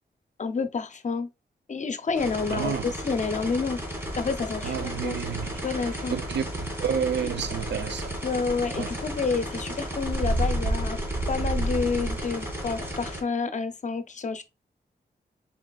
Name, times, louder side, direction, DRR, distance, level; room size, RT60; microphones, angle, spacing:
voice 1, 0.4-1.3 1.7-3.8 4.2-5.2 5.6-6.1 8.2-11.0 11.3-14.4, left 4 dB, 45° left, 0.6 m, -29 dB
sound 1, 2.2-13.2, equal, 10° right, 1.8 m, -35 dB
voice 2, 2.5-2.9 4.6-5.6 6.1-8.1 8.8-8.9, right 7 dB, 80° right, 0.5 m, -30 dB
sound 2, 4.0-12.9, right 1 dB, 55° right, 1.0 m, -33 dB
4.8 x 4.0 x 2.3 m
wide cardioid pair, 100°, 18 cm